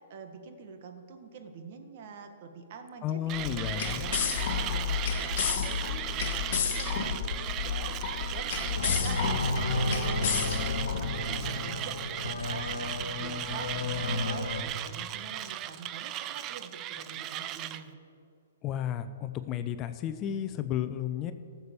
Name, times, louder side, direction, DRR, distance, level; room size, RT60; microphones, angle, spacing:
voice 1, 0.1-5.4 5.7-8.0 8.3-9.2 9.8-10.3 10.7-18.0, right 5 dB, 50° right, 6 dB, 1.6 m, -45 dB
voice 2, 3.0-4.0 18.6-21.3, left 10 dB, 30° left, 11 dB, 0.6 m, -33 dB
sound 1, 3.3-11.5, left 7 dB, 55° left, 1.4 m, -32 dB
Mechanisms, 3.3-17.8, right 12 dB, 30° right, 0.5 m, -37 dB
sound 2, 8.7-14.6, left 3 dB, 90° left, 1.4 m, -32 dB
14.5 x 7.0 x 6.9 m, 2.5 s
hypercardioid pair, 130°, 0 cm